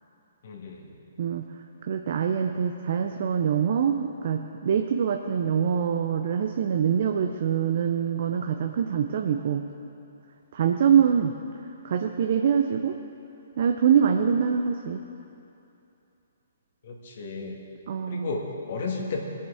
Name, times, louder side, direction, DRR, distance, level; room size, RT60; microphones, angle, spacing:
voice 1, 0.4-0.9 16.8-17.6 18.1-19.2, left 3 dB, 60° left, 0 dB, 1.7 m, -33 dB
voice 2, 1.8-9.6 10.5-11.3 11.8-13.0 13.6-15.0 17.9-18.3, right 7 dB, 55° right, 5 dB, 0.6 m, -24 dB
21.5 x 7.3 x 3.6 m, 2.8 s
hypercardioid pair, 130°, 0 cm